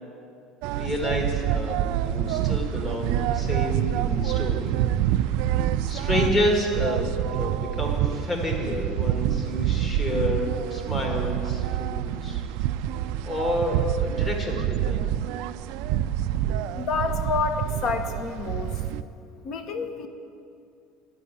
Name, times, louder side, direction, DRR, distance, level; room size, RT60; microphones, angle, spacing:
sound 1, 0.6-19.0, right 11 dB, 70° right, 0.3 m, -27 dB
voice 1, 0.7-4.7 5.9-7.1 7.3-12.4 13.2-15.0, left 1 dB, 25° left, 1 dB, 1.8 m, -29 dB
voice 2, 16.8-18.7 19.4-20.1, left 5 dB, 50° left, 7 dB, 0.9 m, -28 dB
10.0 x 5.5 x 8.4 m, 2.5 s
cardioid pair, 130°, 0 cm